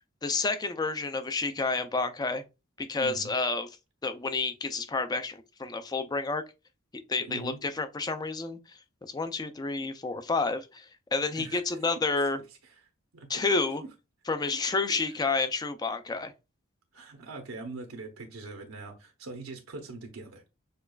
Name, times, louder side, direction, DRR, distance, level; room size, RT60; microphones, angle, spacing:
voice 1, 0.2-2.4 2.8-3.7 4.0-6.4 7.1-8.6 9.0-10.8 11.1-12.4 13.3-13.8 14.3-16.3, left 3 dB, 20° left, 0.4 m, -30 dB
voice 2, 3.0-3.3 7.3-7.6 11.3-11.8 12.6-12.8 13.1-13.5 16.9-20.4, right 3 dB, 80° right, 0.8 m, -42 dB
6.6 x 2.3 x 2.3 m
head